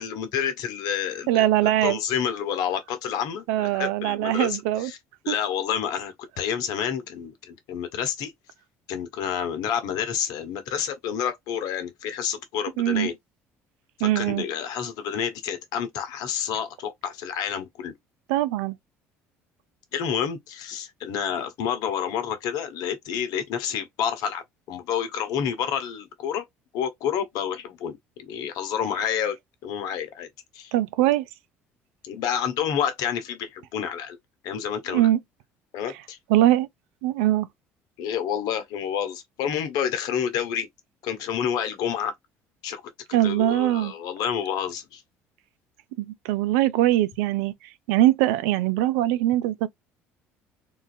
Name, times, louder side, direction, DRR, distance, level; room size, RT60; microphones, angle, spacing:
voice 1, 0.0-1.5 1.8-5.0 5.2-8.3 8.9-13.2 14.0-17.9 19.9-26.5 26.7-29.4 29.6-30.3 30.5-30.7 32.0-34.2 34.4-35.1 35.7-36.2 38.0-40.7 41.0-42.1 42.6-42.8 43.2-45.0, left 8 dB, 70° left, 1.0 m, -29 dB
voice 2, 1.3-2.0 3.5-4.9 5.3-5.4 12.8-13.1 14.0-14.4 18.3-18.8 30.7-31.3 34.9-35.2 36.3-36.7 37.0-37.5 43.1-43.9 46.0-47.5 47.9-49.7, right 14 dB, 80° right, 0.4 m, -22 dB
3.7 x 2.6 x 2.5 m
hypercardioid pair, 65°, 7 cm